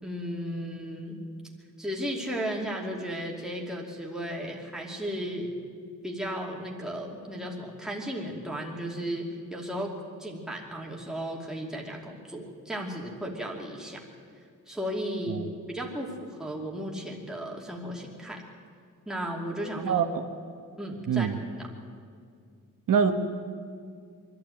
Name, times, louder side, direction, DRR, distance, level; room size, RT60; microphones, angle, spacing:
voice 1, 0.0-1.2 1.8-5.5 6.0-9.9 10.2-14.0 14.7-15.4 15.7-18.4 19.1-20.0 20.8-21.3 21.6-21.7, equal, ahead, -2 dB, 2.7 m, -35 dB
voice 2, 19.8-20.2 21.1-21.4 22.9-23.1, right 7 dB, 75° right, 5 dB, 1.4 m, -24 dB
24.0 x 12.5 x 9.1 m, 2.2 s
wide cardioid pair, 155°, 33 cm